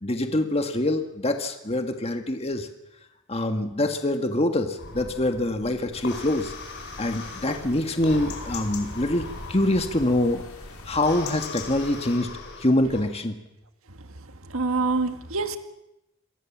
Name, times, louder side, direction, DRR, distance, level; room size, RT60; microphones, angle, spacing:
voice 1, 0.0-2.7 3.3-6.6 7.0-10.5 10.9-13.4, left 1 dB, 25° left, 6 dB, 1.7 m, -25 dB
sound 1, 4.8-13.0, left 2 dB, 50° left, 7.2 m, -39 dB
sound 2, 5.9-12.2, left 4 dB, 70° left, 4.8 m, -43 dB
voice 2, 13.9-15.6, right 3 dB, 65° right, 8 dB, 1.9 m, -27 dB
28.0 x 23.0 x 7.4 m, 0.89 s
head